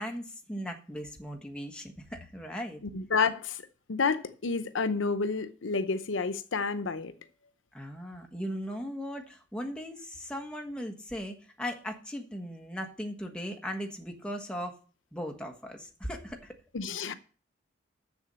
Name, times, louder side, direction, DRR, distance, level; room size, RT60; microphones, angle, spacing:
voice 1, 0.0-2.8 7.7-14.8 15.1-16.5, equal, 5° left, 1.3 m, -38 dB
voice 2, 2.9-3.6 3.9-7.1 16.7-17.1, left 4 dB, 85° left, 0.7 m, -29 dB
7.1 x 6.9 x 7.8 m
head